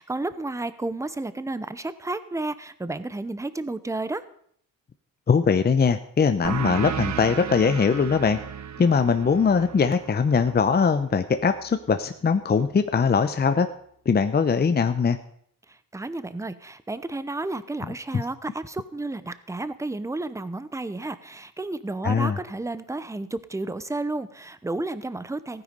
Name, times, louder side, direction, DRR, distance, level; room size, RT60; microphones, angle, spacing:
voice 1, 0.0-4.2 15.7-25.6, right 2 dB, 10° right, 14 dB, 0.7 m, -32 dB
voice 2, 5.3-8.4 8.8-13.7 14.1-15.2 18.1-18.2 22.0-22.4, left 5 dB, 30° left, 9 dB, 0.7 m, -21 dB
sound 1, 6.4-11.6, right 7 dB, 50° right, 1.0 m, -34 dB
15.5 x 9.7 x 5.3 m, 0.64 s
cardioid pair, 110°, 35 cm